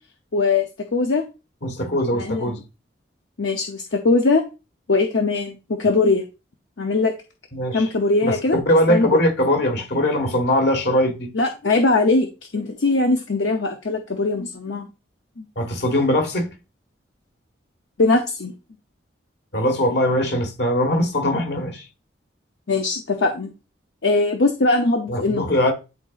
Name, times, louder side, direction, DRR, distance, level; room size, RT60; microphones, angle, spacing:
voice 1, 0.3-0.7 0.9-1.2 2.1-2.5 3.4-4.4 4.9-6.2 6.8-7.1 7.7-8.6 8.9-9.2 11.3-12.3 12.5-14.8 15.4-15.5 18.0-18.5 22.7-23.5 24.0-25.5, left 3 dB, 75° left, 0.7 m, -20 dB
voice 2, 1.6-2.6 7.5-7.9 8.2-11.3 15.5-16.5 19.5-21.9 25.1-25.7, left 1 dB, 60° left, 1.6 m, -21 dB
10.5 x 4.0 x 2.5 m
head